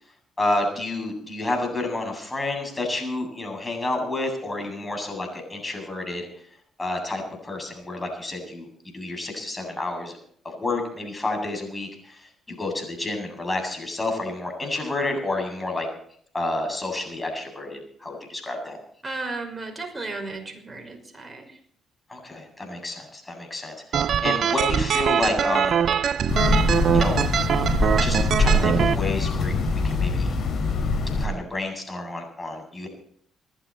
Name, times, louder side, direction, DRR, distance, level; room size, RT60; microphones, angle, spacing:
voice 1, 0.4-6.3 6.8-8.7 8.9-10.2 10.4-15.9 16.3-18.8 22.1-25.8 26.9-27.2 27.8-30.3 31.2-32.9, left 2 dB, 20° left, 3 dB, 7.9 m, -30 dB
voice 2, 19.0-21.6, right 3 dB, 20° right, 2 dB, 5.8 m, -34 dB
sound 1, 23.9-28.9, right 8 dB, 60° right, 0.6 m, -23 dB
sound 2, 26.3-31.3, left 2 dB, 55° left, 6.1 m, -23 dB
27.5 x 11.5 x 4.4 m, 0.62 s
hypercardioid pair, 50°, 0 cm